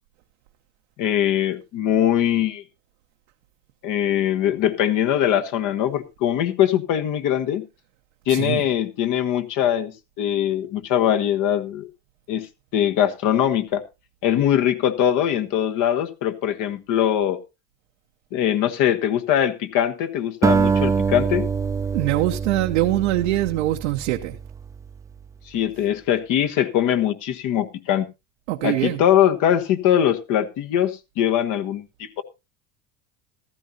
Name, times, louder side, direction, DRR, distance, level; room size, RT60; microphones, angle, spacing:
voice 1, 1.0-2.6 3.8-7.6 8.3-11.9 12.3-12.5 12.7-13.8 14.2-17.4 18.3-21.5 25.5-28.1 28.6-32.2, left 10 dB, 60° left, 1.3 m, -22 dB
voice 2, 8.3-8.6 21.9-24.4 28.5-29.0, right 15 dB, 85° right, 0.9 m, -23 dB
Acoustic guitar, 20.4-24.9, right 5 dB, 10° right, 0.5 m, -24 dB
14.5 x 12.5 x 2.8 m
supercardioid pair, 95°, 36 cm